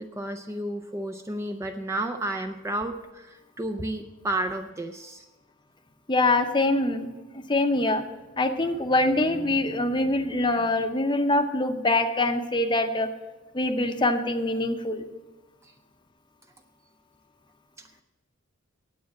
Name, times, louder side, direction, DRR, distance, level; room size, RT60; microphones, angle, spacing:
voice 1, 0.0-5.3 15.6-15.7, right 1 dB, 15° right, 6 dB, 0.4 m, -32 dB
voice 2, 6.1-7.1 7.5-8.0 8.4-13.1 13.5-15.0, left 2 dB, 20° left, 8 dB, 0.7 m, -24 dB
9.5 x 8.4 x 7.3 m, 1.1 s
head